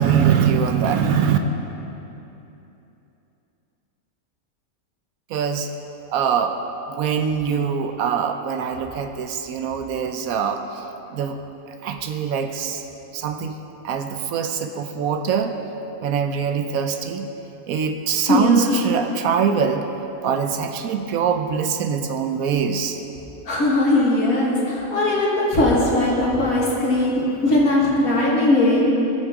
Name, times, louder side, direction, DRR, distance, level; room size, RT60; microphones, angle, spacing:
voice 1, 0.0-1.4 5.3-5.7 6.1-6.6 6.9-10.8 11.1-11.4 11.8-12.8 13.1-13.5 13.8-15.5 16.0-17.3 17.7-19.9 20.2-23.0, right 7 dB, 80° right, 6 dB, 1.1 m, -23 dB
voice 2, 18.3-18.8 23.5-28.9, left 1 dB, 80° left, -5 dB, 2.5 m, -19 dB
19.0 x 6.5 x 3.7 m, 2.9 s
omnidirectional pair, 1.5 m